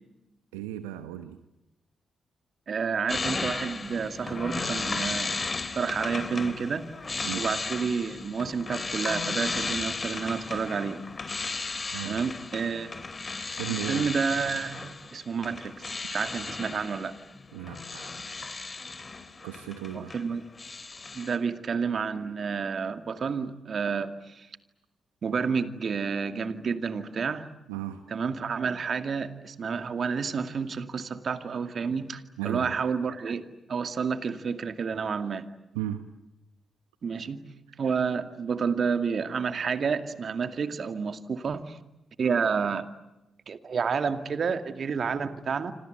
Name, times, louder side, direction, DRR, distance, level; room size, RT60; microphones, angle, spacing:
voice 1, 0.5-1.4 7.2-7.5 11.7-12.3 13.5-14.1 17.5-18.1 19.4-20.1 27.7-28.0 32.4-32.7 35.7-36.0, right 13 dB, 90° right, 9 dB, 1.1 m, -35 dB
voice 2, 2.7-5.3 5.7-6.9 7.4-11.0 12.1-12.9 13.9-17.2 19.9-20.4 21.1-24.5 25.2-27.5 28.1-35.5 37.0-37.5 37.8-41.8 42.2-42.9 43.5-45.7, right 5 dB, 55° right, 9 dB, 2.3 m, -30 dB
sound 1, 3.1-20.3 20.5-21.4, left 3 dB, 40° left, 3.3 m, -35 dB
27.5 x 27.0 x 8.1 m, 0.96 s
hypercardioid pair, 40°, 0 cm